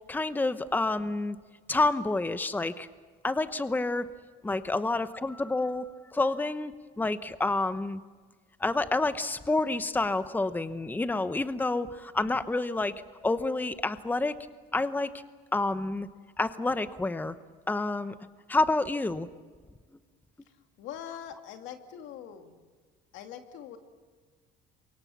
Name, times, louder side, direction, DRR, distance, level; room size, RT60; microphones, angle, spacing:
voice 1, 0.1-1.4 1.7-2.9 3.2-4.1 4.4-8.0 8.6-12.9 13.2-14.3 14.7-15.1 15.5-16.1 16.4-17.3 17.7-18.1 18.5-19.3, left 2 dB, 10° left, 12 dB, 0.9 m, -28 dB
voice 2, 20.8-22.6 23.1-23.8, left 9 dB, 80° left, 6 dB, 2.4 m, -43 dB
28.0 x 24.0 x 7.1 m, 1.5 s
cardioid pair, 105°, 19 cm